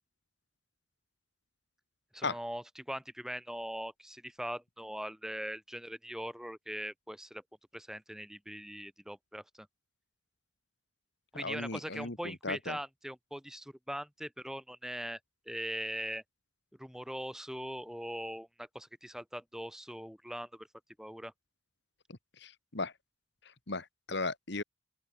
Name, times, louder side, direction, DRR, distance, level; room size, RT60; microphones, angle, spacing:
voice 1, 2.1-7.4 7.7-9.7 11.3-15.2 15.5-16.2 16.8-20.7 21.0-21.3, equal, ahead, 4.6 m, -41 dB
voice 2, 11.4-12.8 22.1-22.9 23.4-24.6, left 3 dB, 55° left, 2.1 m, -37 dB
open air
head